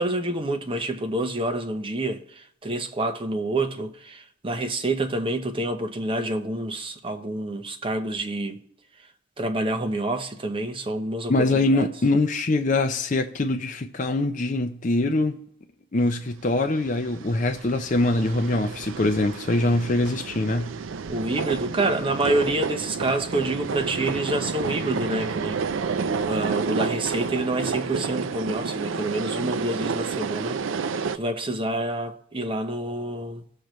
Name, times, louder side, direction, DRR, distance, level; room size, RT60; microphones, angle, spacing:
voice 1, 0.0-8.6 9.4-11.9 21.1-26.0 26.2-33.4, right 1 dB, 25° right, 0.8 m, -28 dB
voice 2, 11.3-15.4 15.9-20.8, left 2 dB, 40° left, 0.5 m, -23 dB
sound 1, 16.8-31.2, right 5 dB, 65° right, 0.4 m, -30 dB
18.0 x 6.6 x 3.1 m
head